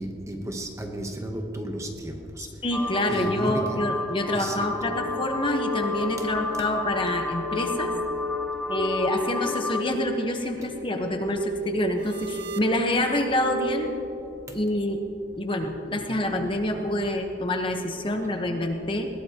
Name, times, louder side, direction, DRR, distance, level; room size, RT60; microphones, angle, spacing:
voice 1, 0.0-2.5 3.1-3.9 4.3-4.9, right 1 dB, 15° right, 3 dB, 1.0 m, -33 dB
voice 2, 2.6-7.9 8.7-13.9 14.5-15.0 15.4-19.1, left 1 dB, 30° left, 3 dB, 1.1 m, -27 dB
sound 1, 2.7-9.8, left 2 dB, 5° left, 0.7 m, -32 dB
sound 2, 4.8-13.9, left 1 dB, 55° right, 0.8 m, -34 dB
21.0 x 16.5 x 2.9 m, 3.0 s
head